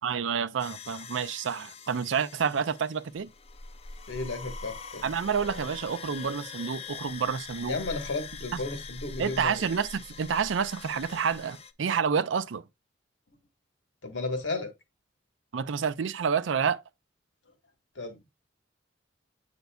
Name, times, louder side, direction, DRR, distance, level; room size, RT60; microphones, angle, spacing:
voice 1, 0.0-3.3 5.0-7.8 8.5-8.6 9.2-12.6 15.5-16.8, right 6 dB, 85° right, 0.5 m, -29 dB
sound 1, 0.6-11.7, left 4 dB, 35° left, 0.4 m, -43 dB
voice 2, 4.1-5.1 7.7-9.7 14.0-14.7 17.9-18.2, left 3 dB, 85° left, 1.4 m, -33 dB
8.0 x 5.2 x 2.3 m
head